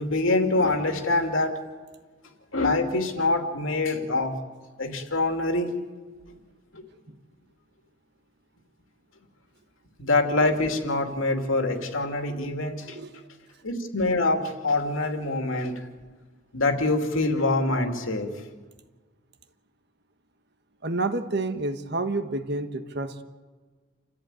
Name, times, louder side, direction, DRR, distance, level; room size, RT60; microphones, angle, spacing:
voice 1, 0.0-1.5 2.5-4.4 4.8-5.7 6.7-6.8 10.0-13.0 13.6-15.9 16.5-18.3, left 2 dB, 80° left, 4 dB, 2.8 m, -25 dB
voice 2, 12.8-13.2 20.8-23.2, right 2 dB, 55° right, 9 dB, 1.4 m, -29 dB
28.5 x 14.0 x 9.1 m, 1.4 s
head